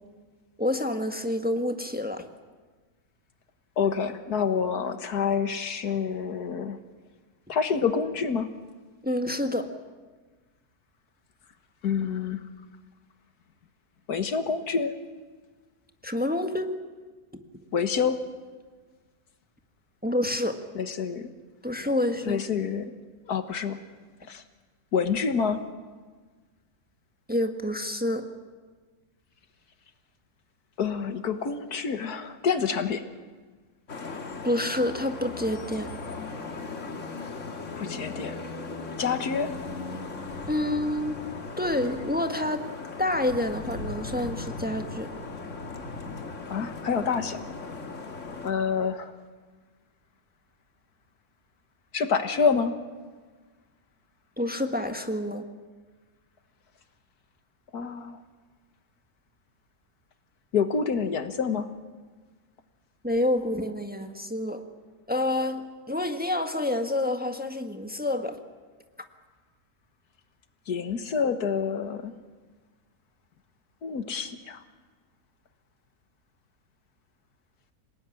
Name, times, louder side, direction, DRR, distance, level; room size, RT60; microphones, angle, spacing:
voice 1, 0.6-2.2 9.0-9.7 16.0-16.7 20.0-20.6 21.6-22.4 27.3-28.2 34.4-35.9 40.5-41.2 41.6-42.7 43.0-45.1 54.4-55.4 63.0-64.6 65.1-68.4, left 1 dB, 5° right, 6 dB, 1.4 m, -28 dB
voice 2, 3.8-6.8 7.5-8.5 11.8-12.4 14.1-14.9 17.7-18.2 20.8-21.3 22.2-22.9 23.3-23.8 24.3-24.4 24.9-25.6 30.8-33.0 37.8-38.4 39.0-39.5 46.5-47.4 48.4-49.1 51.9-52.7 57.7-58.2 60.5-61.7 70.7-72.1 73.8-74.6, left 6 dB, 85° left, 9 dB, 2.0 m, -27 dB
Vehicle horn car horn honking / Traffic noise roadway noise, 33.9-48.5, left 3 dB, 55° left, 2.0 m, -37 dB
27.0 x 18.5 x 9.8 m, 1.4 s
omnidirectional pair, 1.6 m